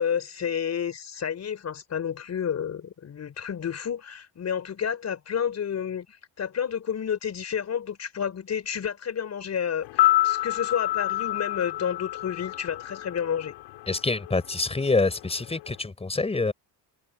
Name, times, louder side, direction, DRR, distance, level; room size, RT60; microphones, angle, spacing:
voice 1, 0.0-13.5, left 8 dB, 35° left, 5.2 m, -30 dB
sound 1, 9.8-14.0 14.3-14.4, left 16 dB, 90° left, 4.7 m, -27 dB
voice 2, 13.9-16.5, left 3 dB, 15° left, 5.0 m, -26 dB
cardioid pair, 135°, 44 cm